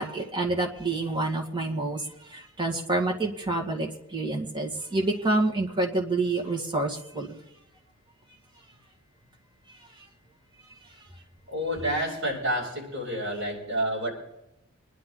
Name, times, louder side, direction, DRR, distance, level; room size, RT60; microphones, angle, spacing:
voice 1, 0.0-2.0 2.3-7.3, right 2 dB, 20° right, 1 dB, 1.9 m, -28 dB
voice 2, 11.5-14.1, equal, 65° right, -3 dB, 6.8 m, -29 dB
25.5 x 11.0 x 3.8 m, 0.89 s
head